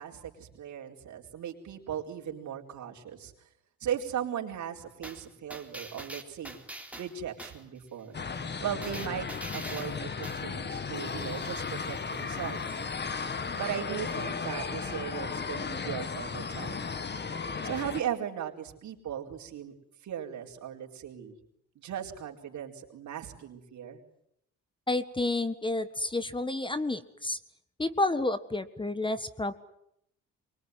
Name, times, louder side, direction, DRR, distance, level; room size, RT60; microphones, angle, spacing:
voice 1, 0.0-3.3 3.8-6.6 7.0-8.2 8.6-9.3 9.5-12.6 13.5-16.8 17.6-19.7 20.0-21.4 21.7-24.0, right 9 dB, 70° right, 1 dB, 4.5 m, -37 dB
sound 1, 5.0-7.6 8.8-10.5 10.9-16.1 16.5-16.6, right 1 dB, 5° right, 3.8 m, -47 dB
sound 2, 8.1-18.0, left 5 dB, 35° left, 1.9 m, -35 dB
voice 2, 24.9-27.4 27.8-29.5, left 2 dB, 15° left, 13 dB, 1.6 m, -30 dB
24.5 x 22.5 x 9.5 m, 0.76 s
cardioid pair, 90°, 30 cm